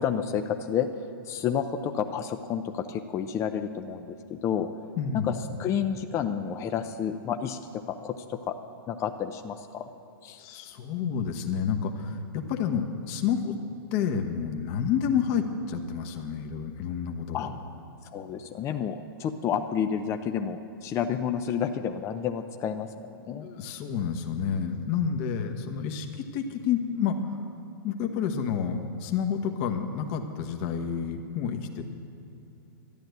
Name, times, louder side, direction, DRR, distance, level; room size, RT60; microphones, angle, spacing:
voice 1, 0.0-4.7 5.1-8.6 8.9-9.9 10.2-10.4 17.3-17.5 18.0-23.5, left 8 dB, 20° left, 7 dB, 0.6 m, -30 dB
voice 2, 5.0-5.3 10.4-13.5 13.9-17.5 23.4-27.4 27.8-31.8, left 7 dB, 40° left, 5 dB, 1.2 m, -29 dB
12.5 x 10.5 x 8.0 m, 2.9 s
hypercardioid pair, 135°, 13 cm